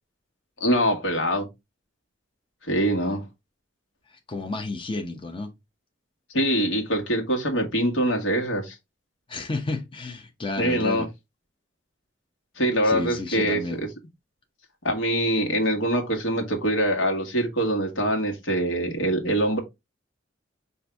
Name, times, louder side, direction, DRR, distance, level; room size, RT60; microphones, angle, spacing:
voice 1, 0.6-1.5 2.6-3.2 6.3-8.7 10.6-11.0 12.6-13.9 14.8-19.6, right 1 dB, 75° left, 1.5 m, -24 dB
voice 2, 4.1-5.5 9.3-11.1 12.8-13.8, left 2 dB, 25° left, 0.7 m, -31 dB
5.6 x 2.6 x 3.4 m
head